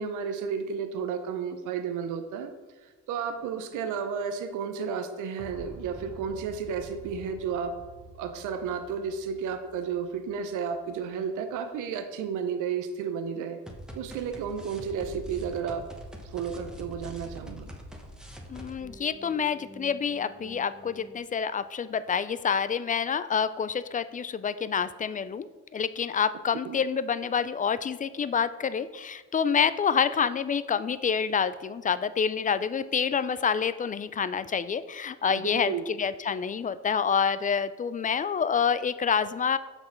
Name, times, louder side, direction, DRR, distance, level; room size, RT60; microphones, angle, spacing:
voice 1, 0.0-2.5 2.8-7.7 8.2-13.6 13.9-15.9 16.2-17.7 26.6-26.8 35.2-35.8, right 6 dB, 90° right, 8 dB, 0.7 m, -32 dB
sound 1, 3.4-3.7 5.4-11.2 13.7-21.2, equal, ahead, 1.1 m, -46 dB
voice 2, 18.5-39.6, left 6 dB, 25° left, 14 dB, 0.3 m, -27 dB
6.5 x 6.1 x 4.4 m, 1.2 s
cardioid pair, 90°, 30 cm